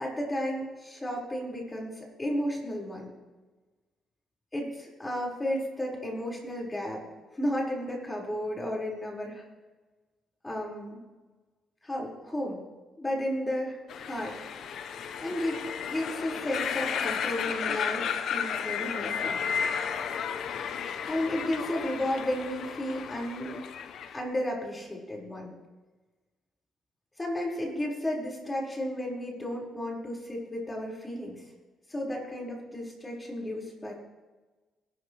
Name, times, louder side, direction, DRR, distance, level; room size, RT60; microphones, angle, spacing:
voice 1, 0.0-3.1 4.5-7.0 7.3-9.4 10.4-11.0 11.8-12.6 13.0-14.4 15.2-15.6 15.9-19.4 21.1-23.6 24.1-25.6 27.2-31.4 31.9-33.9, left 1 dB, 15° left, -2 dB, 5.5 m, -33 dB
sound 1, 13.9-24.2, left 7 dB, 70° left, 0.9 m, -33 dB
22.5 x 13.0 x 3.4 m, 1.2 s
cardioid pair, 90°, 0 cm